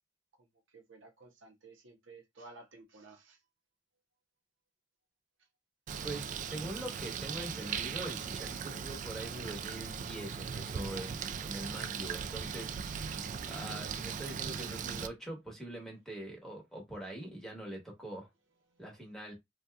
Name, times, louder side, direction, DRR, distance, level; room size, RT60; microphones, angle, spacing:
voice 1, 0.7-3.4 18.6-19.3, right 3 dB, 75° right, 0.8 m, -56 dB
Bird, 5.9-15.1, right 7 dB, 40° right, 0.3 m, -39 dB
voice 2, 6.0-18.3 18.8-19.3, right 1 dB, ahead, 1.1 m, -43 dB
2.7 x 2.3 x 3.4 m
head